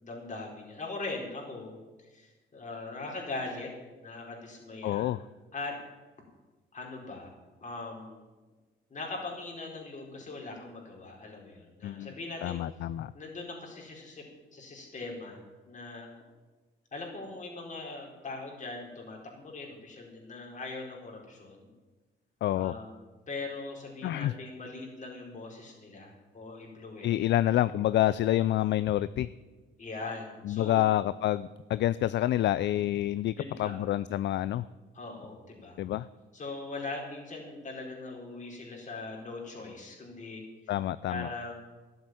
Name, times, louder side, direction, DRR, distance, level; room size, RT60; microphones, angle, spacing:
voice 1, 0.0-3.7 4.0-5.1 5.5-5.7 6.7-7.3 7.6-8.2 8.9-12.6 13.1-14.2 14.5-16.1 16.9-21.7 22.5-23.0 23.3-27.4 29.8-30.9 33.4-33.7 34.9-35.8 36.3-40.7 41.1-41.5, left 3 dB, 40° left, 0 dB, 4.5 m, -41 dB
voice 2, 4.8-5.2 11.8-12.1 12.4-13.1 22.4-22.8 24.0-24.3 27.0-29.3 30.4-33.3 33.6-34.7 35.8-36.1 40.7-41.3, left 13 dB, 65° left, 17 dB, 0.4 m, -28 dB
12.0 x 8.0 x 9.1 m, 1.2 s
cardioid pair, 90°, 20 cm